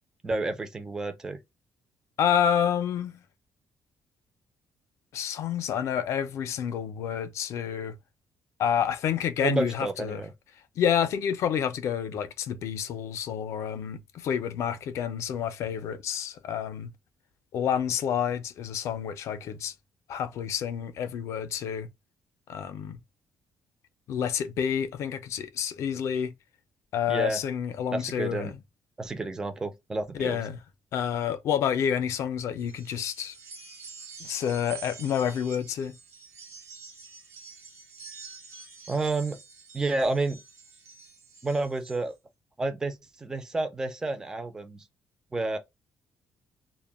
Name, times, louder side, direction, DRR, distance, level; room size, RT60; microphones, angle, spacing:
voice 1, 0.2-1.4 9.4-10.3 27.1-27.4 27.9-28.6 29.0-30.4 38.9-39.4 39.7-40.4 41.4-42.2 42.6-44.8 45.3-45.6, right 2 dB, 10° right, 0.3 m, -30 dB
voice 2, 2.2-3.2 5.1-7.9 8.6-10.2 10.8-16.9 17.5-19.7 20.1-21.9 22.5-23.0 24.1-26.3 26.9-28.5 30.1-30.6 30.9-33.3 34.2-36.0, left 8 dB, 60° left, 0.4 m, -29 dB
sound 1, 32.6-42.0, right 5 dB, 55° right, 0.7 m, -47 dB
2.1 x 2.1 x 3.3 m
cardioid pair, 170°, 6 cm